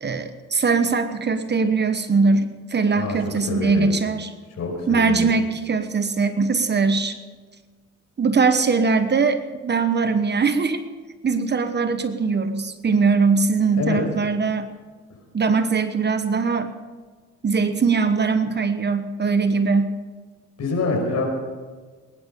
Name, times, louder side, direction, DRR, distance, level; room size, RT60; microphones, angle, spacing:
voice 1, 0.0-4.3 4.9-7.2 8.2-10.8 11.2-14.7 15.3-16.7 17.4-19.9, right 4 dB, 35° right, 9 dB, 1.1 m, -21 dB
voice 2, 2.9-3.9 4.6-5.3 13.8-14.0 20.6-21.3, left 3 dB, 60° left, 2 dB, 5.5 m, -26 dB
20.0 x 11.0 x 5.5 m, 1.4 s
cardioid pair, 90°, 30 cm